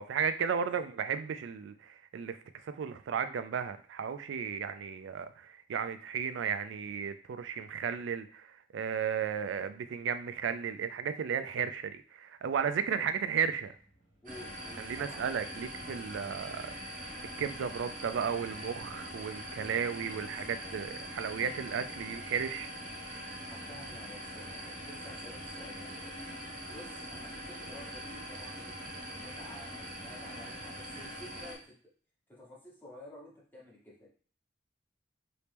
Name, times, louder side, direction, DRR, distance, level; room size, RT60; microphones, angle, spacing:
voice 1, 0.0-13.8 14.8-22.7, right 7 dB, 80° right, 10 dB, 0.3 m, -34 dB
voice 2, 12.6-13.1 14.2-15.2 20.1-20.8 23.5-26.2 26.7-31.8 32.3-34.1, left 1 dB, 10° left, -5 dB, 1.0 m, -52 dB
sound 1, 13.1-31.6, right 1 dB, 75° left, 1.3 m, -56 dB
sound 2, 14.3-31.6, equal, 45° right, 0.8 m, -43 dB
3.1 x 2.9 x 3.4 m, 0.43 s
head